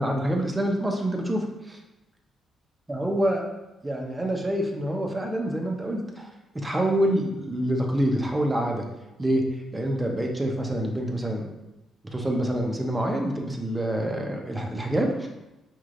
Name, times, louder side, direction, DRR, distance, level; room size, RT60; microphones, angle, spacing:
voice 1, 0.0-1.8 2.9-3.4 3.8-6.3 6.5-8.8 9.2-9.4 9.7-11.4 12.1-15.3, right 1 dB, 15° right, 2 dB, 0.7 m, -26 dB
5.2 x 3.1 x 2.5 m, 0.98 s
cardioid pair, 90°, 0 cm